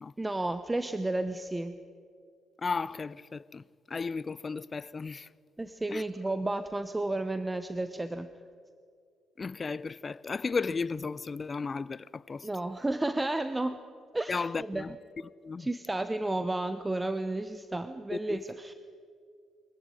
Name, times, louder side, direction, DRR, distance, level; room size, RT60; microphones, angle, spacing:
voice 1, 0.2-1.8 5.6-8.3 12.4-13.8 14.1-14.9 15.6-18.7, right 2 dB, 15° right, 1.0 m, -32 dB
voice 2, 2.6-5.3 5.9-6.0 9.4-12.5 14.3-14.9 15.4-15.7 18.1-18.4, left 4 dB, 35° left, 0.6 m, -34 dB
23.0 x 14.5 x 9.9 m
supercardioid pair, 65°, 0 cm